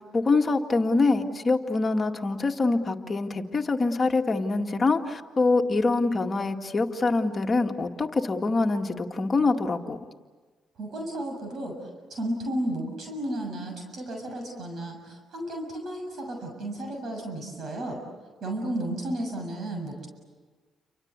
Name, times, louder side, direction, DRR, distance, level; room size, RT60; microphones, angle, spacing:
voice 1, 0.0-10.0, left 3 dB, 30° left, 3 dB, 2.1 m, -25 dB
voice 2, 10.8-18.0 18.4-20.1, right 1 dB, 55° right, 3 dB, 6.9 m, -33 dB
29.5 x 24.5 x 8.3 m, 1.4 s
cardioid pair, 90°, 0 cm